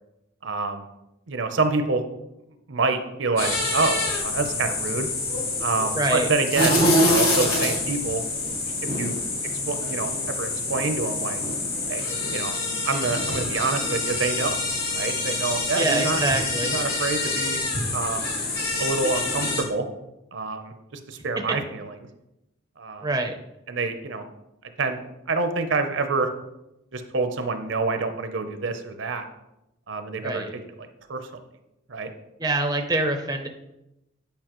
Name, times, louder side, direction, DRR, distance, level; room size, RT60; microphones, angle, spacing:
voice 1, 0.4-0.9 1.3-2.0 2.7-5.1 5.6-8.2 8.6-9.2 9.7-11.4 11.9-12.5 12.8-14.6 14.9-16.2 16.7-17.6 17.9-18.3 18.8-19.9 20.3-22.0 22.8-23.1 23.7-24.2 24.6-25.0 25.3-26.3 26.9-29.2 29.9-31.3 31.9-32.1, right 3 dB, 65° right, 7 dB, 0.7 m, -27 dB
sound 1, 3.4-19.6, left 2 dB, 50° left, 1.7 m, -26 dB
voice 2, 5.9-6.3 15.8-16.7 23.0-23.4 30.2-30.5 32.4-33.5, right 2 dB, 20° right, 4 dB, 0.6 m, -25 dB
8.6 x 5.3 x 3.0 m, 0.90 s
head